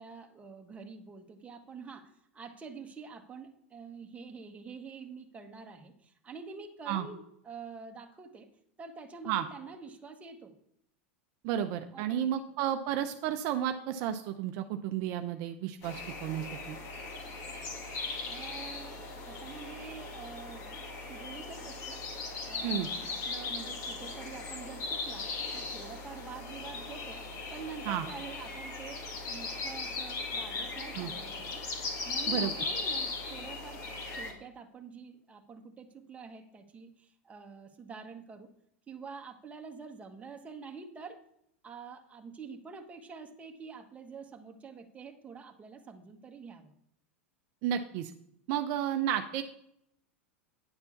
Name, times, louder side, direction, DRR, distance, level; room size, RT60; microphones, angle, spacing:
voice 1, 0.0-8.5 8.8-10.5 11.9-12.3 18.3-22.0 22.4-27.2 27.5-31.6 32.0-33.9 34.1-38.5 38.9-41.2 41.6-46.7, right 5 dB, 20° right, 4 dB, 1.3 m, -47 dB
voice 2, 11.4-16.8 22.6-22.9 27.9-28.0 30.9-31.1 32.3-32.5 47.6-48.1 48.5-49.4, right 10 dB, 55° right, 7 dB, 0.6 m, -32 dB
sound 1, 15.8-34.3, left 3 dB, 45° left, 2.2 m, -38 dB
9.8 x 4.4 x 7.1 m, 0.74 s
hypercardioid pair, 105°, 7 cm